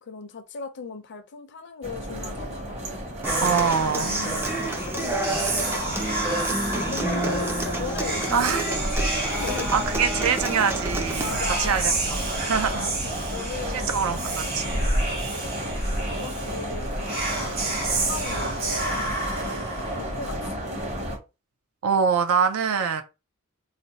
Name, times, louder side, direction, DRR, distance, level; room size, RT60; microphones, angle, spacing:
voice 1, 0.0-3.0 3.4-6.3 6.7-9.7 11.2-11.9 12.5-14.2 15.1-15.9 16.2-16.9 17.2-19.6 19.9-20.6, left 4 dB, 55° left, 0.5 m, -38 dB
sound 1, 1.8-21.2, equal, 30° right, 0.8 m, -33 dB
Human voice / Acoustic guitar, 3.2-11.2, right 1 dB, 10° right, 0.3 m, -30 dB
Whispering, 3.2-20.4, right 2 dB, 45° right, 1.2 m, -30 dB
voice 2, 3.4-4.1 6.9-7.0 8.3-8.6 9.7-12.9 13.7-14.6 21.8-23.0, right 6 dB, 75° right, 0.4 m, -24 dB
2.5 x 2.1 x 3.9 m
head